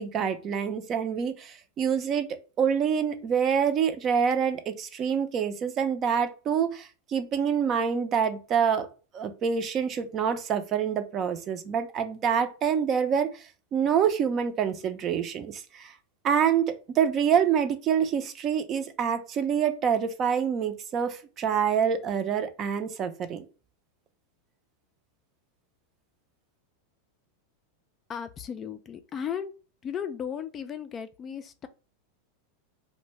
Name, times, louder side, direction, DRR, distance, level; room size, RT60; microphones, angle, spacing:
voice 1, 0.0-2.3 2.6-8.9 9.1-13.4 13.7-15.9 16.2-23.4, right 7 dB, 35° right, 0.5 m, -26 dB
voice 2, 28.1-29.5 29.8-31.7, left 8 dB, 30° left, 0.3 m, -35 dB
2.5 x 2.1 x 3.1 m
hypercardioid pair, 110°, 0 cm